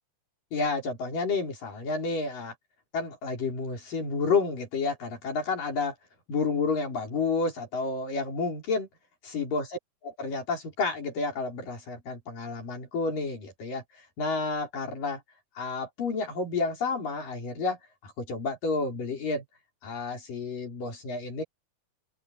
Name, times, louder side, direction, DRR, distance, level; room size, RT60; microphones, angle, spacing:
voice 1, 0.5-2.5 2.9-6.0 6.3-8.9 9.2-13.8 14.2-15.2 15.6-19.4 19.8-21.4, left 4 dB, 90° left, 7.3 m, -30 dB
open air
omnidirectional pair, 3.7 m